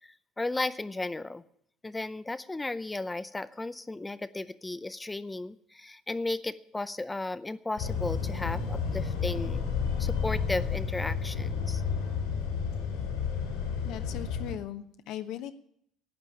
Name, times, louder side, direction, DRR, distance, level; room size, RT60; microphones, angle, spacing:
voice 1, 0.0-1.4 1.8-9.6 10.0-11.8, left 2 dB, 10° left, 15 dB, 0.5 m, -35 dB
sound 1, 7.8-14.5, left 6 dB, 85° left, 6.1 m, -31 dB
voice 2, 13.8-15.5, left 11 dB, 70° left, 8 dB, 1.1 m, -38 dB
12.0 x 9.0 x 9.7 m, 0.69 s
cardioid pair, 130°, 0 cm